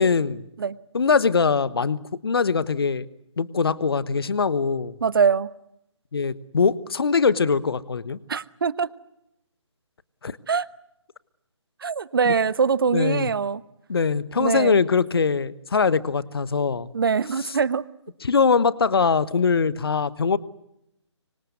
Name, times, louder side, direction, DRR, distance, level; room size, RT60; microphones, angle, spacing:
voice 1, 0.0-0.4 0.9-3.1 3.4-5.0 6.1-8.2 10.2-10.4 12.2-12.3 12.9-13.3 13.9-16.9 17.4-17.6 18.2-20.4, left 5 dB, 50° left, 17 dB, 1.3 m, -22 dB
voice 2, 5.0-5.5 8.3-8.9 10.5-10.7 11.8-13.6 14.4-14.8 16.9-17.8, right 6 dB, 45° right, 18 dB, 1.1 m, -23 dB
26.0 x 25.0 x 8.1 m, 0.81 s
figure-of-eight pair, 145°, 16 cm